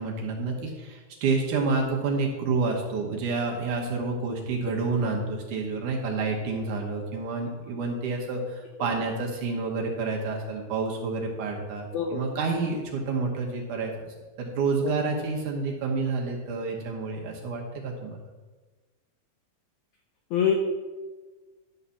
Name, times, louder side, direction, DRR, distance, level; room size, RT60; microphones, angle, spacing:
voice 1, 0.0-11.9 12.1-14.1 14.4-18.2, right 4 dB, 65° right, 0 dB, 2.4 m, -29 dB
voice 2, 11.9-12.3 14.8-14.9 20.3-20.5, left 8 dB, 85° left, 2 dB, 1.7 m, -25 dB
12.0 x 4.0 x 6.9 m, 1.3 s
omnidirectional pair, 4.3 m